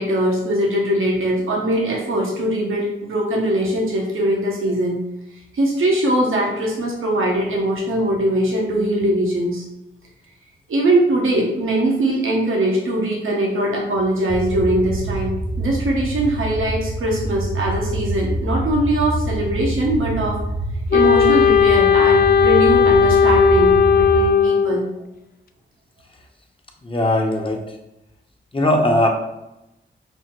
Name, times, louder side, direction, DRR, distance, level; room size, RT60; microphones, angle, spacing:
voice 1, 0.0-5.0 5.5-9.6 10.7-20.4 20.9-24.8, right 1 dB, 80° right, -2 dB, 1.0 m, -21 dB
sound 1, 14.3-24.3, right 1 dB, 10° right, 0.6 m, -26 dB
Wind instrument woodwind instrument, 20.9-24.9, left 7 dB, 45° left, 0.5 m, -15 dB
voice 2, 26.8-27.6 28.5-29.2, left 1 dB, 25° left, 1 dB, 0.9 m, -18 dB
5.4 x 2.1 x 4.5 m, 0.90 s
cardioid pair, 55°, 21 cm